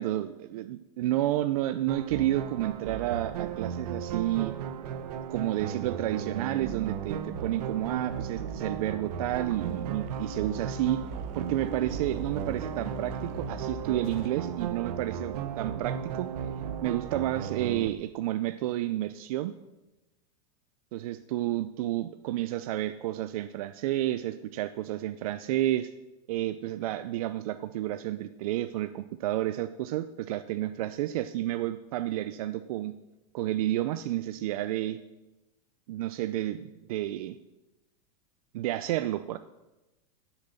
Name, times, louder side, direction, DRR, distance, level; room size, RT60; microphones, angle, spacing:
voice 1, 0.0-4.5 5.3-11.0 11.3-16.3 16.8-19.5 20.9-25.9 26.3-32.9 33.3-35.0 35.9-37.4 38.5-39.4, right 14 dB, 65° right, 11 dB, 0.5 m, -30 dB
sound 1, 1.9-17.9, right 8 dB, 80° right, 1.0 m, -35 dB
sound 2, 7.3-14.3, left 4 dB, 65° left, 2.1 m, -47 dB
sound 3, 8.0-16.6, left 5 dB, 45° right, 1.5 m, -47 dB
11.5 x 7.2 x 6.7 m, 1.0 s
supercardioid pair, 165°, 20 cm